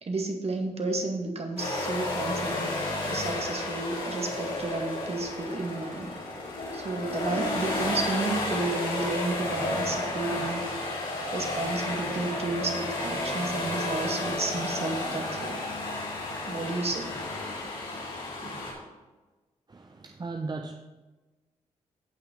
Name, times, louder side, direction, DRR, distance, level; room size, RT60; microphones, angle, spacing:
voice 1, 0.0-2.7 3.0-6.1 6.7-10.6 11.3-15.6 16.5-17.1 18.4-18.6, right 3 dB, 50° right, 3 dB, 2.0 m, -32 dB
sound 1, 1.6-18.7, left 2 dB, 85° left, 3.9 m, -32 dB
voice 2, 19.7-20.8, right 3 dB, 30° right, 4 dB, 0.8 m, -36 dB
16.0 x 5.8 x 4.0 m, 1.2 s
supercardioid pair, 50°, 14 cm